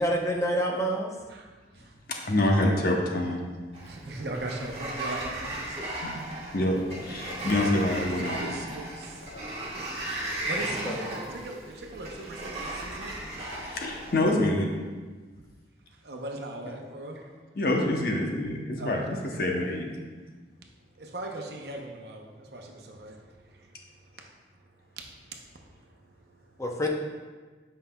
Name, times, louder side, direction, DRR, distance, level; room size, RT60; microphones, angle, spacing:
voice 1, 0.0-1.1 10.8-11.0 26.6-26.9, equal, 15° left, 0 dB, 0.6 m, -27 dB
voice 2, 1.3-1.9 2.2-2.3 3.8-5.9 6.2-6.3 7.2-9.2 10.1-13.2 15.4-15.5 15.9-17.6 18.8-19.2 20.5-26.6, right 2 dB, 65° right, 1 dB, 0.7 m, -41 dB
voice 3, 2.1-3.4 6.0-6.2 6.5-8.5 13.6-14.7 17.6-19.9, left 1 dB, 55° left, 1 dB, 0.8 m, -26 dB
Sliding door, 3.7-14.3, right 1 dB, 35° right, 1.3 m, -36 dB
7.5 x 5.5 x 2.3 m, 1.4 s
head